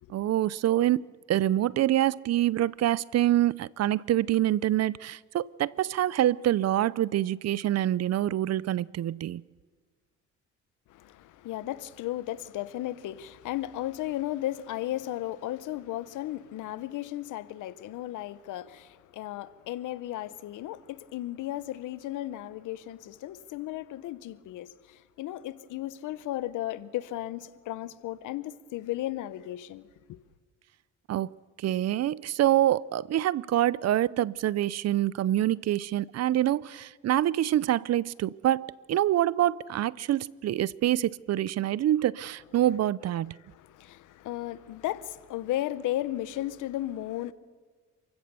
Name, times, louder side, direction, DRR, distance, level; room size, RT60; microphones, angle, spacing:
voice 1, 0.1-9.4 31.1-43.4, right 13 dB, 60° right, 0.5 m, -26 dB
voice 2, 10.9-30.2 43.5-47.3, left 14 dB, 85° left, 0.9 m, -35 dB
27.5 x 16.0 x 6.9 m
cardioid pair, 90°, 30 cm